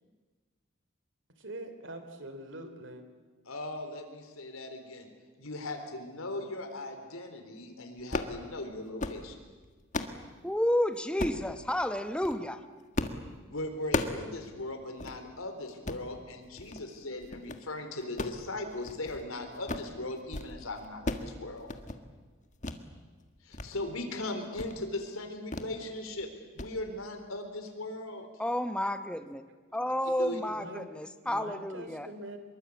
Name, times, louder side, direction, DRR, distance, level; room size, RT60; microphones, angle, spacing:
voice 1, 1.4-3.0 30.5-32.4, right 1 dB, 60° right, 8 dB, 3.3 m, -44 dB
voice 2, 3.5-5.1 5.4-9.4 13.5-21.7 23.4-28.3 30.2-30.4, left 2 dB, 90° left, 6 dB, 3.9 m, -39 dB
sound 1, 8.0-8.4 8.8-9.2 9.6-10.2 11.2-11.5 12.1-12.4 13.0-13.2 13.5-14.3 14.6-14.7 15.0-15.2 15.7-16.1 16.6-16.9 17.2-17.6 18.0-19.3 19.5-19.9 20.2-20.5 20.8-21.3 21.6-22.0 22.6-22.8 23.2-23.7 24.0-24.1 24.5-24.8 25.5-25.7 26.1-26.3 26.6-26.7, left 2 dB, 35° left, 1.6 m, -35 dB
voice 3, 10.4-12.6 28.4-29.4 29.7-32.1, left 1 dB, 5° left, 9 dB, 0.9 m, -31 dB
25.0 x 22.5 x 8.5 m, 1.4 s
head